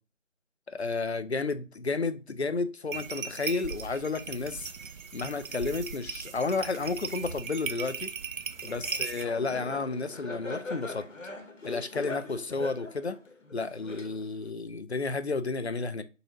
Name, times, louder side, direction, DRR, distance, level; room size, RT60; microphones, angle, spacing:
voice 1, 0.7-4.7 5.1-8.1 8.6-11.1 11.6-13.2 13.5-16.0, left 4 dB, 60° left, 0.5 m, -32 dB
sound 1, 2.9-9.2, right 6 dB, 90° right, 0.6 m, -38 dB
Laughter, 8.6-14.5, left 2 dB, 75° left, 1.1 m, -41 dB
4.0 x 3.8 x 2.8 m
figure-of-eight pair, 175°, 38 cm